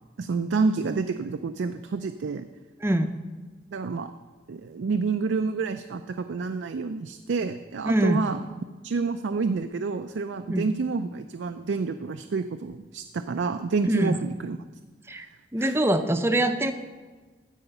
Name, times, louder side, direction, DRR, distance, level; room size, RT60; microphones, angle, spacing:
voice 1, 0.2-2.4 3.7-4.1 4.5-8.4 8.8-14.6 15.6-15.8, right 4 dB, 80° right, 8 dB, 0.4 m, -28 dB
voice 2, 2.8-3.1 7.9-8.3 10.5-10.7 13.8-14.2 15.1-15.3 15.5-16.7, right 1 dB, 15° right, 8 dB, 0.5 m, -23 dB
15.0 x 5.0 x 5.5 m, 1.3 s
head